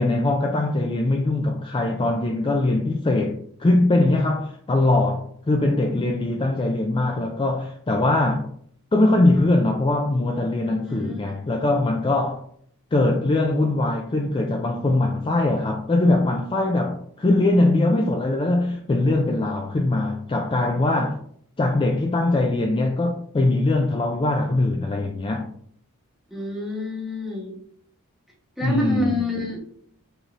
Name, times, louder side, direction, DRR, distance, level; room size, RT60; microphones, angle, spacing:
voice 1, 0.0-8.5 8.9-12.4 12.9-21.2 21.6-25.5 28.6-29.1, left 2 dB, 25° left, 0.4 m, -21 dB
voice 2, 10.8-11.2 26.3-27.6 28.6-29.7, left 1 dB, ahead, 1.1 m, -28 dB
4.9 x 4.0 x 2.5 m
head